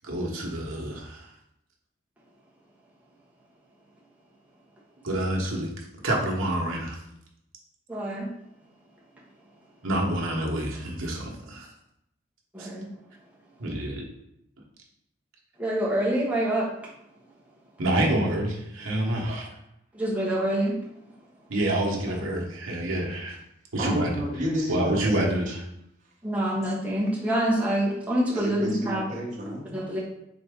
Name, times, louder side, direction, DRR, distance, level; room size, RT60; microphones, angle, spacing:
voice 1, 0.0-1.3 5.0-5.7 6.0-7.0 9.8-11.7 12.6-12.7 13.6-14.0 17.8-19.5 21.5-23.4 23.7-24.1 24.7-25.6, right 1 dB, 75° right, -2 dB, 1.0 m, -27 dB
voice 2, 7.9-8.3 12.5-12.9 15.6-16.7 19.9-20.8 26.2-29.3 29.7-30.0, right 1 dB, 5° right, -6 dB, 1.0 m, -26 dB
voice 3, 22.1-22.4 23.8-25.3 28.3-29.8, equal, 35° right, -3 dB, 1.1 m, -32 dB
4.1 x 3.3 x 3.6 m, 0.80 s
head